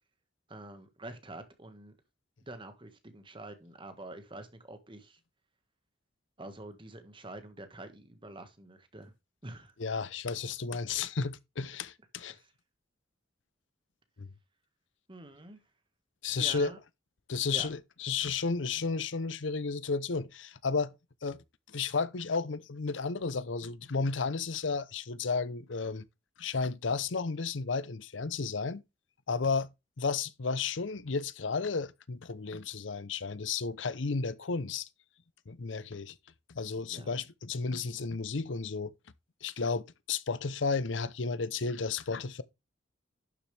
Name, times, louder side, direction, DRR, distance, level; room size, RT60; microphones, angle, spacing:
voice 1, 0.5-2.0 2.4-5.2 6.4-9.1 9.4-9.7 12.3-12.5 15.1-15.6 16.3-16.8 17.5-17.7 36.9-37.2, right 2 dB, 25° right, 1.6 m, -46 dB
voice 2, 9.8-12.4 14.2-14.3 16.2-16.7 17.3-20.9 21.2-26.0 26.4-28.8 29.3-29.7 30.0-34.9 35.5-36.1 36.5-38.9 39.4-42.4, left 4 dB, 75° left, 0.7 m, -33 dB
11.5 x 7.2 x 3.4 m
head